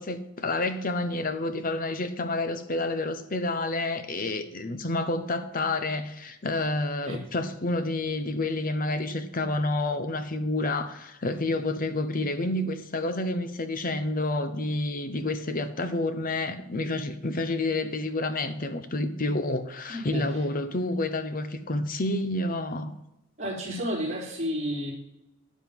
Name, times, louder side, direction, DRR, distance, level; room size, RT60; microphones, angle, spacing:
voice 1, 0.0-22.9, left 2 dB, 40° left, 0.9 m, -29 dB
voice 2, 19.9-20.4 23.4-24.9, equal, 30° right, 4.3 m, -31 dB
12.0 x 7.6 x 5.3 m
head